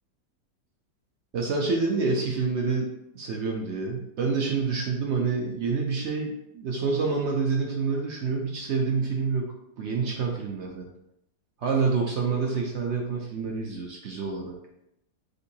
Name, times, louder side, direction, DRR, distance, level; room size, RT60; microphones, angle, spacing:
voice 1, 1.3-2.9 3.1-10.9 11.6-14.6, right 4 dB, 75° right, 0 dB, 0.6 m, -27 dB
6.5 x 2.6 x 2.7 m, 0.83 s
omnidirectional pair, 1.9 m